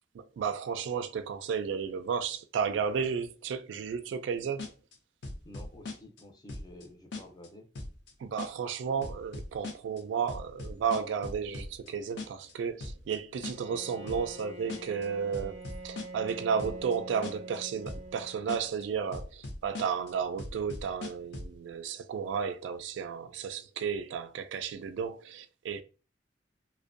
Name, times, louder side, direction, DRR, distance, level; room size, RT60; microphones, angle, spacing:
voice 1, 0.1-4.6 8.2-15.6 15.8-25.8, right 6 dB, 85° right, 0.3 m, -33 dB
sound 1, 4.6-5.0 5.2-6.2 6.5-6.8 7.1-7.5 7.8-8.1 8.4-8.7 9.0-10.0 10.3-11.9 12.2-12.5 12.8-13.2 13.4-13.8 14.1-14.4 14.7-15.1 15.3-16.3 16.6-17.0 17.2-17.6 17.9-18.2 18.5-18.8 19.1-20.1 20.4-21.6, left 2 dB, 75° left, 0.5 m, -40 dB
voice 2, 5.4-7.7, left 1 dB, 20° left, 0.4 m, -50 dB
Bowed string instrument, 13.4-18.8, right 2 dB, 35° right, 0.6 m, -45 dB
2.5 x 2.1 x 2.5 m
head